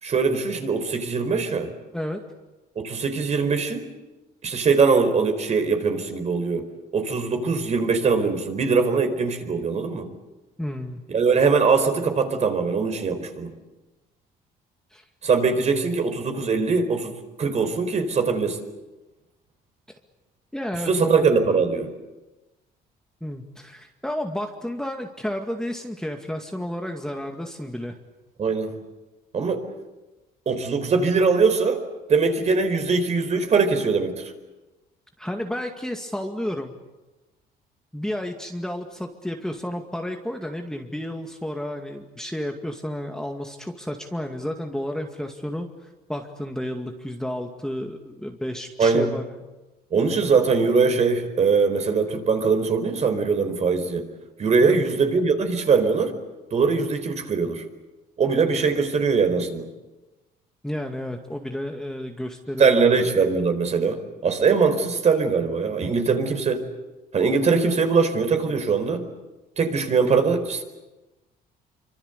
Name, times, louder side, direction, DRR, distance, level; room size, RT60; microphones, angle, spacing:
voice 1, 0.0-1.7 2.8-3.9 4.4-6.6 6.9-10.1 11.1-13.5 15.2-18.6 20.8-21.9 28.4-28.8 29.3-29.6 30.5-31.8 32.1-34.3 48.8-49.1 49.9-54.1 54.4-56.1 56.5-57.6 58.2-59.7 62.6-66.6 67.1-69.1 69.6-70.6, right 5 dB, 40° right, 7 dB, 4.5 m, -21 dB
voice 2, 10.6-11.0 14.9-15.0 19.9-20.0 20.5-21.2 23.2-28.0 35.2-36.7 37.9-49.5 54.6-54.8 60.6-62.9, left 1 dB, 5° left, 3 dB, 2.2 m, -31 dB
26.0 x 25.0 x 8.2 m, 1.1 s
cardioid pair, 110°, 17 cm